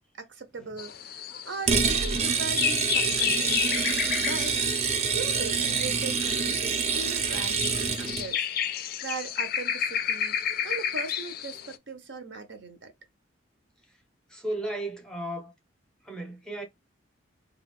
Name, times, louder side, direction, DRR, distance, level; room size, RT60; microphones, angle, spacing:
voice 1, 0.2-3.5 4.2-4.7 5.0-12.9, right 3 dB, 70° right, 0.7 m, -39 dB
sound 1, 0.8-11.8, left 9 dB, 50° left, 0.3 m, -32 dB
sound 2, 1.7-8.3, right 6 dB, 35° right, 0.4 m, -27 dB
voice 2, 14.3-15.5 16.0-16.6, right 1 dB, 5° left, 0.6 m, -34 dB
2.3 x 2.3 x 3.4 m
head